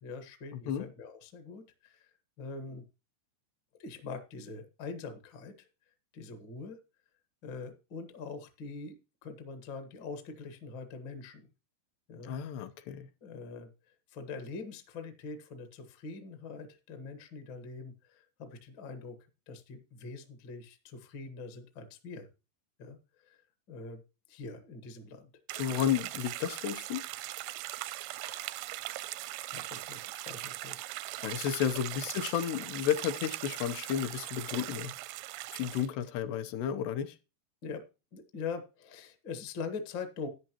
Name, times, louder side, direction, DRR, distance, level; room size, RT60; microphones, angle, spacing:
voice 1, 0.0-2.1 2.4-2.8 3.8-5.7 6.1-6.8 7.4-9.0 9.2-11.5 12.1-12.3 13.2-13.7 14.1-19.2 19.5-22.3 22.8-23.0 23.3-23.4 23.7-24.0 24.3-25.3 28.1-28.8 29.4-30.8 31.9-32.0 37.6-37.8 38.1-40.3, left 4 dB, 60° left, 7 dB, 1.2 m, -43 dB
voice 2, 12.2-13.1 25.6-27.0 31.2-34.9 35.5-37.1, left 9 dB, 80° left, 9 dB, 2.9 m, -32 dB
sound 1, 25.5-35.9, right 17 dB, 80° right, 2.2 m, -40 dB
13.0 x 9.1 x 3.0 m, 0.30 s
omnidirectional pair, 4.8 m